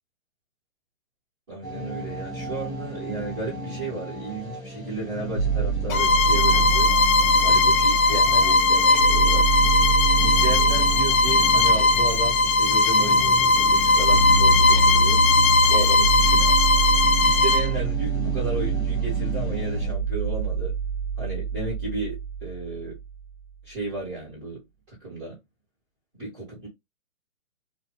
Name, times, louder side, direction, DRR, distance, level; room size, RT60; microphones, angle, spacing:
voice 1, 1.5-6.9 7.4-9.5 10.2-15.2 15.7-16.6 17.2-20.7 21.2-23.0 23.6-24.6 24.9-25.4 26.1-26.7, right 2 dB, 20° right, 1.2 m, -33 dB
sound 1, 1.6-19.9, left 1 dB, ahead, 1.1 m, -36 dB
sound 2, 5.4-23.3, right 5 dB, 25° left, 0.6 m, -26 dB
Bowed string instrument, 5.9-17.7, left 3 dB, 85° left, 0.6 m, -19 dB
2.6 x 2.4 x 2.9 m
hypercardioid pair, 175°, 40 cm